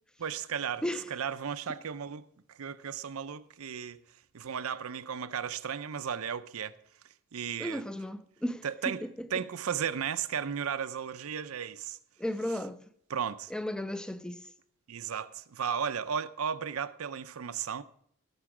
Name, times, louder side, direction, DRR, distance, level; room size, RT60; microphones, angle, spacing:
voice 1, 0.2-4.0 4.3-6.7 7.3-7.8 8.6-9.0 9.3-12.0 13.1-13.5 14.9-17.8, right 7 dB, 75° right, 0.6 m, -35 dB
voice 2, 7.6-8.6 9.0-9.3 12.2-12.8 13.5-14.5, left 1 dB, 5° left, 0.4 m, -34 dB
18.0 x 6.9 x 4.9 m
head